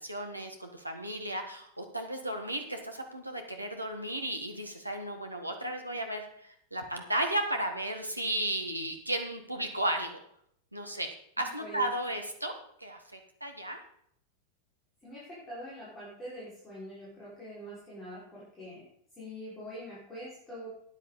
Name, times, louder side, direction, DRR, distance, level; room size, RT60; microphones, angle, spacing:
voice 1, 0.0-10.2 10.7-12.5 12.8-13.8, right 1 dB, 85° right, 4 dB, 1.6 m, -34 dB
voice 2, 11.4-11.9 15.0-18.9 19.2-20.7, equal, 15° left, -8 dB, 5.8 m, -44 dB
13.5 x 9.7 x 4.3 m, 0.67 s
figure-of-eight pair, 90°, 0 cm